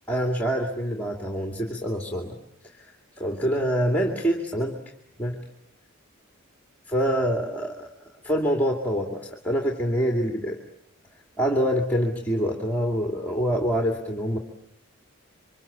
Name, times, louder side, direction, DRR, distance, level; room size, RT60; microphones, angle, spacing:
voice 1, 0.1-2.4 2.6-4.8 5.2-5.4 6.9-7.9 8.2-10.6 11.4-14.4, equal, 10° left, 3 dB, 2.5 m, -26 dB
28.0 x 25.0 x 8.5 m, 0.73 s
head